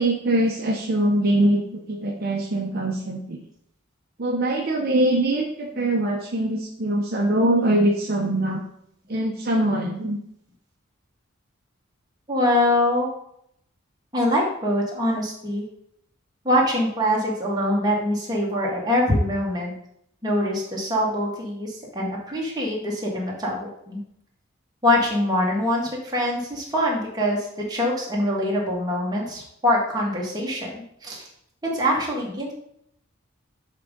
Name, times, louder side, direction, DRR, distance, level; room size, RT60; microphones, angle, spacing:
voice 1, 0.0-3.4 4.2-8.6 9.1-10.2, right 1 dB, 50° right, 0 dB, 0.8 m, -23 dB
voice 2, 12.3-13.1 14.1-15.6 16.4-19.7 20.2-24.0 24.8-31.3 31.6-32.5, left 1 dB, 20° right, -3 dB, 1.7 m, -24 dB
7.4 x 3.7 x 5.2 m, 0.72 s
head